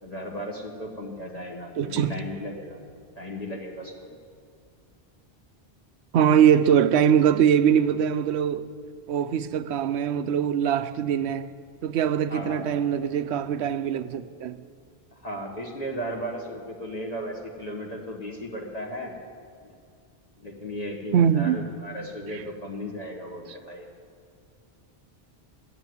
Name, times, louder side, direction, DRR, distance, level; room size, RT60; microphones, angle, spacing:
voice 1, 0.0-2.8 3.1-4.1 12.3-12.7 15.1-19.2 20.4-23.9, equal, 40° left, 1.5 m, -35 dB
voice 2, 1.8-2.1 6.1-8.7 9.1-11.5 11.8-14.6 21.1-21.6, right 8 dB, 85° right, 0.9 m, -22 dB
13.0 x 7.9 x 9.5 m
omnidirectional pair, 1.1 m